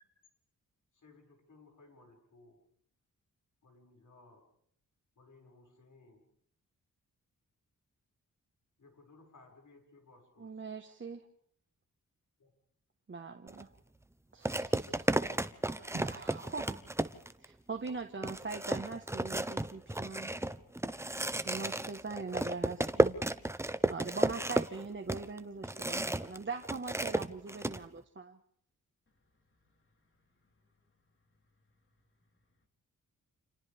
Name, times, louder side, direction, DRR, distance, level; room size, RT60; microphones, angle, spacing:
voice 1, 0.9-2.7 3.6-4.5 5.2-6.3 8.8-10.5 12.4-12.5, left 3 dB, 65° left, 6.4 m, -60 dB
voice 2, 10.4-11.3 13.1-13.7 14.3-15.4 15.7-16.8 17.4-20.3 21.4-23.2 23.5-28.4, right 4 dB, 35° right, 1.5 m, -42 dB
sound 1, 13.5-13.6 14.5-17.5 17.9-18.0 18.2-26.4 26.6-27.8, right 1 dB, 10° right, 0.9 m, -32 dB
voice 3, 29.1-29.5 30.3-32.7, left 2 dB, 40° left, 4.2 m, -76 dB
30.0 x 27.5 x 3.6 m
cardioid pair, 75°, 32 cm